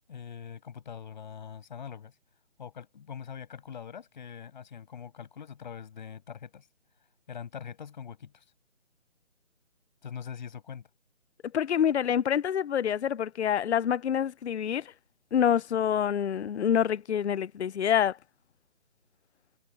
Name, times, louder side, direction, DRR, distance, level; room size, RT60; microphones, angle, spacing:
voice 1, 0.1-2.1 2.6-6.7 7.3-8.4 10.0-10.9, left 7 dB, 40° left, 6.9 m, -43 dB
voice 2, 11.5-14.8 15.3-18.2, left 9 dB, 60° left, 0.5 m, -26 dB
figure-of-eight pair, 155°, 38 cm